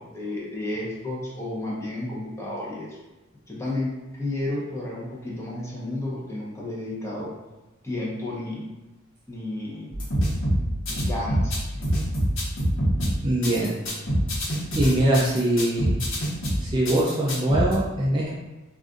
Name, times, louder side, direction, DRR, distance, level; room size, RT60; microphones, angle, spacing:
voice 1, 0.0-3.0 3.5-7.3 7.8-8.7 9.3-9.9 10.9-11.9, left 1 dB, 15° left, -5 dB, 0.7 m, -32 dB
sound 1, 9.9-17.7, equal, 75° left, 1.0 m, -25 dB
voice 2, 13.2-13.8 14.7-16.0 16.6-18.3, right 1 dB, 20° right, -5 dB, 0.4 m, -22 dB
2.5 x 2.3 x 3.6 m, 1.1 s
head